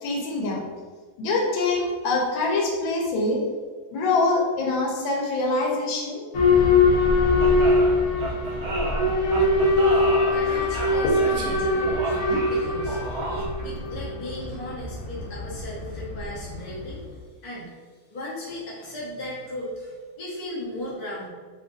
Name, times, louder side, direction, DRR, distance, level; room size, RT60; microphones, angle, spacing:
voice 1, 0.0-0.6 1.2-3.4 3.9-6.2 11.0-11.2, left 2 dB, 90° left, -1 dB, 1.5 m, -24 dB
Boat Water vehicle / Alarm, 6.3-17.0, left 2 dB, 60° left, 0.9 m, -22 dB
sound 1, 7.4-13.7, right 1 dB, 90° right, 0.6 m, -32 dB
voice 2, 10.3-12.1 12.5-13.0 13.5-17.7 18.1-21.3, left 1 dB, 30° left, -6 dB, 0.8 m, -36 dB
3.3 x 2.4 x 3.9 m, 1.5 s
omnidirectional pair, 2.0 m